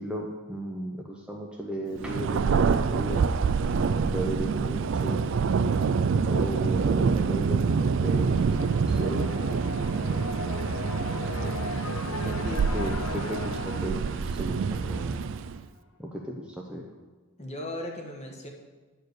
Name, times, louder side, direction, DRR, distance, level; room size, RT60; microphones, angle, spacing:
voice 1, 0.0-3.3 3.8-5.3 6.3-8.3 8.6-9.4 12.2-15.1 16.0-16.8, right 1 dB, 5° right, -1 dB, 0.6 m, -35 dB
Thunder, 2.0-15.6, right 5 dB, 60° right, 0.3 m, -26 dB
sound 1, 7.6-15.4, left 3 dB, 75° left, 0.7 m, -38 dB
voice 2, 11.3-12.5 17.4-18.5, left 1 dB, 30° left, 1 dB, 1.2 m, -40 dB
9.4 x 4.7 x 6.5 m, 1.3 s
head